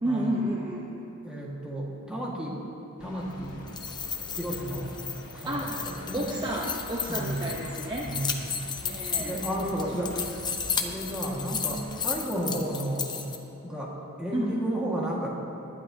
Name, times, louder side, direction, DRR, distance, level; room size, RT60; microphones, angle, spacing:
voice 1, 0.0-0.9 5.4-5.9 6.1-8.1 8.8-9.4 9.9-10.4 14.3-14.6, right 1 dB, 20° right, -3 dB, 0.9 m, -31 dB
voice 2, 1.2-2.6 3.0-3.7 4.4-4.9 5.2-6.2 7.1-7.4 8.1-8.3 9.3-10.1 10.5-13.1 13.6-15.4, right 1 dB, 5° right, -4 dB, 1.7 m, -32 dB
sound 1, 3.0-12.3, left 1 dB, 75° left, 1.5 m, -45 dB
sound 2, 3.6-13.4, left 6 dB, 20° left, 0.7 m, -34 dB
19.5 x 12.0 x 2.8 m, 3.0 s
head